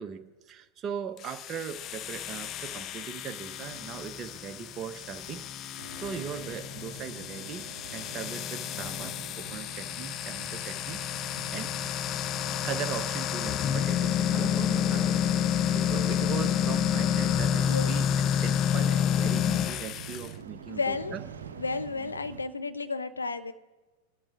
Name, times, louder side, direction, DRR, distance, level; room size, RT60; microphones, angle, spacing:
voice 1, 0.0-11.8 12.6-21.2, right 8 dB, 30° right, 9 dB, 0.7 m, -39 dB
sound 1, 1.2-20.3, left 9 dB, 30° left, 0.4 m, -29 dB
sound 2, 5.8-22.4, right 7 dB, 70° right, 0.7 m, -48 dB
voice 2, 20.7-21.2 21.6-23.5, left 4 dB, 75° left, 10 dB, 0.6 m, -32 dB
27.0 x 12.0 x 2.4 m, 1.2 s
figure-of-eight pair, 90°, 0 cm